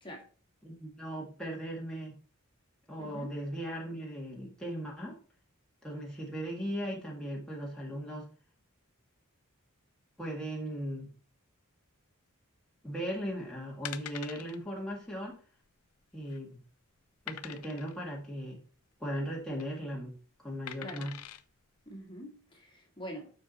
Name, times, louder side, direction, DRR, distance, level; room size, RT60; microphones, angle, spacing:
voice 1, 0.6-2.2 2.9-5.2 5.8-8.3 10.2-11.1 12.8-15.4 16.1-16.6 17.3-18.6 19.0-20.1 20.4-21.2, equal, 5° left, -4 dB, 1.8 m, -38 dB
voice 2, 3.0-3.3 20.8-21.0 21.9-23.3, equal, 25° left, 1 dB, 1.9 m, -44 dB
sound 1, 13.2-13.4 13.8-14.6 14.9-15.1 15.3-15.4 16.0-16.5 17.3-18.0 19.3-19.7 20.7-21.4 22.0-22.1, left 10 dB, 85° left, 0.6 m, -44 dB
7.0 x 5.8 x 4.1 m, 0.41 s
head